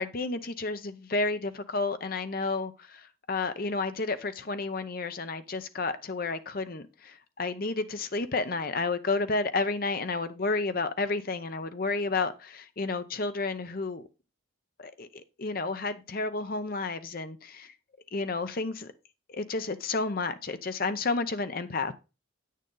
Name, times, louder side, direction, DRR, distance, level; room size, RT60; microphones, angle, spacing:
voice 1, 0.0-14.0 14.8-17.7 18.1-18.9 19.3-21.9, left 3 dB, 45° left, 0.7 m, -31 dB
8.9 x 6.6 x 3.8 m
head